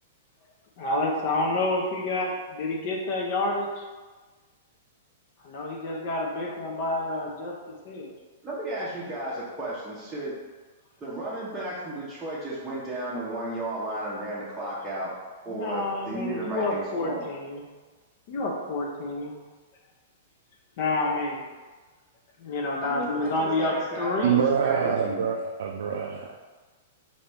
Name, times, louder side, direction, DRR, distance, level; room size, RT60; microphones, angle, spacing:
voice 1, 0.8-3.7 5.4-7.5 7.8-8.1 15.5-17.6 18.3-19.3 20.8-21.5 22.4-24.4, left 2 dB, 45° left, -1 dB, 0.6 m, -28 dB
voice 2, 8.4-10.4 11.0-15.2 15.4-17.3 22.8-25.3, right 1 dB, 10° right, -9 dB, 0.7 m, -34 dB
voice 3, 24.2-26.5, right 7 dB, 80° right, 1 dB, 0.3 m, -26 dB
4.2 x 2.6 x 3.3 m, 1.3 s
hypercardioid pair, 155°, 0 cm